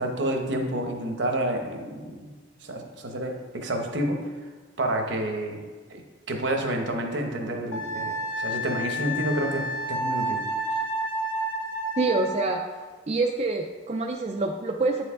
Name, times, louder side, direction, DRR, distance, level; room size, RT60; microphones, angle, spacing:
voice 1, 0.0-2.3 2.6-4.2 4.8-5.6 5.9-10.4, right 1 dB, 65° right, 3 dB, 0.9 m, -29 dB
Wind instrument woodwind instrument, 7.7-12.6, right 1 dB, 70° left, 1.3 m, -30 dB
voice 2, 12.0-12.6 13.1-15.1, right 3 dB, 35° right, 2 dB, 0.3 m, -26 dB
9.0 x 4.6 x 3.6 m, 1.4 s
head